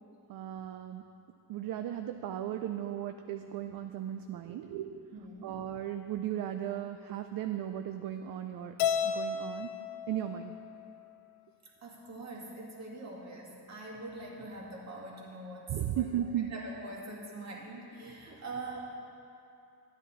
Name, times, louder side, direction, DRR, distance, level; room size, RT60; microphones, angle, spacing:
voice 1, 0.3-1.0 1.5-5.0 5.4-8.7 9.0-9.7 10.1-10.5 15.7-16.5, right 11 dB, 60° right, 7 dB, 0.5 m, -36 dB
voice 2, 5.1-5.6 11.6-18.9, right 2 dB, 40° right, -3 dB, 2.1 m, -44 dB
Keyboard (musical), 8.8-11.1, left 7 dB, 85° left, 0.7 m, -33 dB
12.0 x 10.0 x 4.0 m, 2.7 s
cardioid pair, 130°, 40 cm